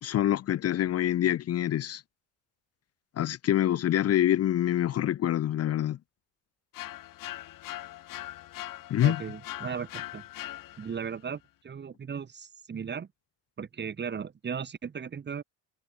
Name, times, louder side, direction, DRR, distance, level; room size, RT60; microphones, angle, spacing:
voice 1, 0.0-2.0 3.2-6.0 8.9-9.2, left 12 dB, 40° left, 1.1 m, -26 dB
sound 1, 6.7-11.1, left 15 dB, 55° left, 4.6 m, -41 dB
voice 2, 9.0-10.2 10.8-13.1 13.6-15.4, right 7 dB, 25° right, 5.9 m, -36 dB
cardioid pair, 160°, 39 cm